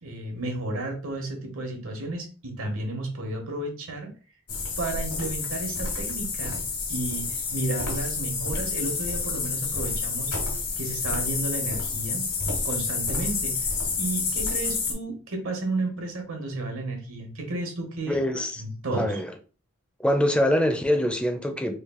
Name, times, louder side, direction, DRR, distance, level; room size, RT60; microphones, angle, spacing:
voice 1, 0.0-4.1 4.8-6.6 6.9-10.3 10.8-12.3 12.6-13.7 14.0-19.2, right 2 dB, 75° right, 3 dB, 1.1 m, -32 dB
sound 1, 4.5-14.9, left 4 dB, 70° left, 1.3 m, -29 dB
voice 2, 18.1-18.6 18.9-19.3 20.0-21.8, left 1 dB, 5° left, 6 dB, 0.5 m, -24 dB
3.2 x 2.4 x 3.7 m, 0.36 s
head